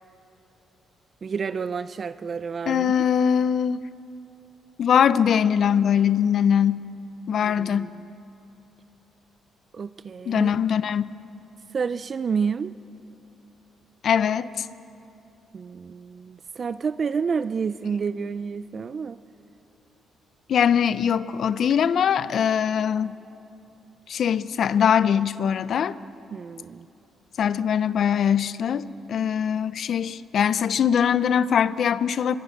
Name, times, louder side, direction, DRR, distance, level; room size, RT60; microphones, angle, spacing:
voice 1, 1.2-2.9 7.4-8.1 9.7-10.5 11.7-12.7 15.5-19.2 26.3-26.9, right 5 dB, 45° right, 0.5 m, -29 dB
voice 2, 2.7-3.8 4.8-6.8 7.3-7.9 10.3-11.1 14.0-14.7 20.5-23.1 24.1-26.0 27.4-32.3, left 8 dB, 60° left, 0.7 m, -22 dB
25.0 x 23.0 x 6.6 m
cardioid pair, 90°, 0 cm